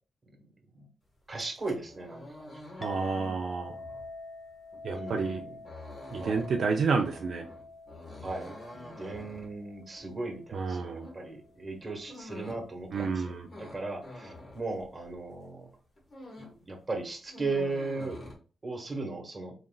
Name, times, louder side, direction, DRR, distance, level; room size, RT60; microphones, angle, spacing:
sound 1, 1.3-15.3 15.7-16.7 16.9-18.3, left 1 dB, 40° left, 1.3 m, -47 dB
voice 1, 1.3-2.2 4.9-5.6 6.2-6.5 8.2-13.3 13.6-15.7 16.4-18.2 18.6-19.5, right 3 dB, 20° right, 1 dB, 1.1 m, -37 dB
Chink clink, 2.8-11.5, left 2 dB, 25° left, 0.5 m, -47 dB
voice 2, 2.8-3.7 4.8-5.4 6.1-7.5 10.5-11.1 12.9-13.5, right 4 dB, 60° right, 2 dB, 0.4 m, -30 dB
4.2 x 3.8 x 2.3 m, 0.37 s
wide cardioid pair, 160°, 0 cm